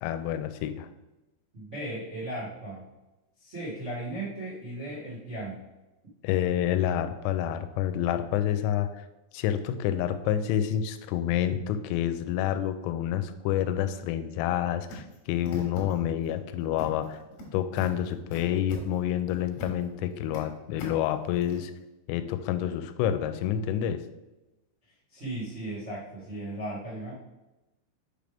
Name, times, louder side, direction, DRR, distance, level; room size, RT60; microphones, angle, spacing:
voice 1, 0.0-0.9 6.2-8.9 9.3-17.2 17.5-21.7 22.1-24.0, left 10 dB, 85° left, 10 dB, 3.2 m, -28 dB
voice 2, 1.5-2.8 3.4-5.6 25.1-27.1, right 1 dB, 80° right, -10 dB, 0.6 m, -36 dB
sound 1, 14.9-16.3 16.8-17.4 17.8-19.9 20.1-20.4 20.8-21.6, left 2 dB, 60° left, 3.0 m, -43 dB
7.2 x 3.4 x 5.1 m, 1.0 s
omnidirectional pair, 5.8 m